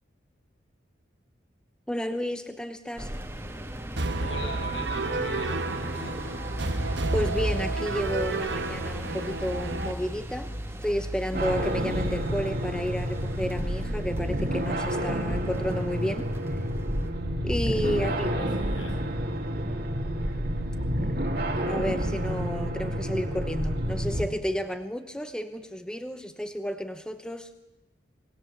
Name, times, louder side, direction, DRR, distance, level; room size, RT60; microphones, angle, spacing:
voice 1, 1.9-3.1 7.1-10.5 10.8-16.7 17.4-18.3 19.5-19.9 21.7-27.5, equal, 5° left, 9 dB, 0.8 m, -32 dB
sound 1, 3.0-17.1, equal, 15° right, 1.8 m, -38 dB
sound 2, 4.0-9.9, right 2 dB, 70° right, 1.3 m, -30 dB
voice 2, 4.2-6.3 17.8-19.0, left 1 dB, 80° left, 1 dB, 7.0 m, -41 dB
sound 3, 11.3-24.3, equal, 50° right, 2.5 m, -29 dB
25.5 x 20.0 x 7.3 m, 1.0 s
head